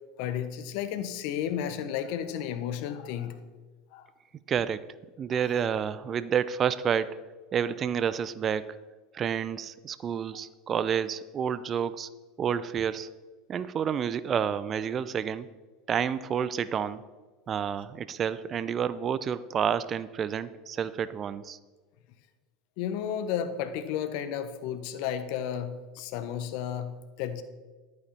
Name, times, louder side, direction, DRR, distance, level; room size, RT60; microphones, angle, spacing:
voice 1, 0.2-3.4 3.9-4.1 5.3-5.4 22.8-27.4, left 9 dB, 60° left, 11 dB, 1.1 m, -33 dB
voice 2, 4.5-4.8 5.2-7.2 7.5-8.8 9.1-12.1 12.4-13.1 13.5-15.5 15.9-17.0 17.5-21.6, right 8 dB, 35° right, 15 dB, 0.6 m, -29 dB
11.5 x 9.5 x 4.3 m, 1.3 s
hypercardioid pair, 80°, 0 cm